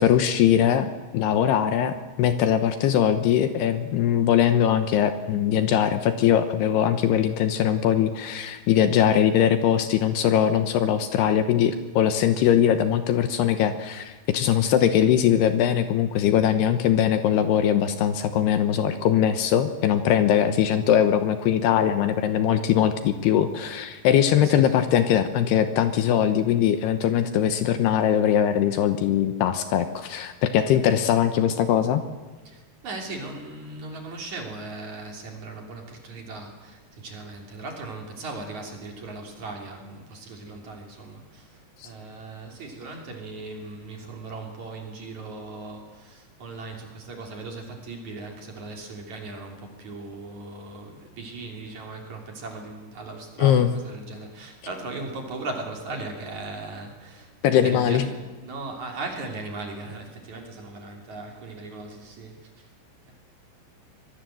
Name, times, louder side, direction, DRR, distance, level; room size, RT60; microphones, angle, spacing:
voice 1, 0.0-32.0 41.8-41.9 53.4-53.7 57.4-58.0, left 9 dB, 75° left, 9 dB, 2.8 m, -21 dB
voice 2, 24.4-24.8 32.4-62.7, right 3 dB, 45° right, 2 dB, 4.1 m, -38 dB
25.0 x 20.5 x 7.7 m, 1.2 s
omnidirectional pair, 5.2 m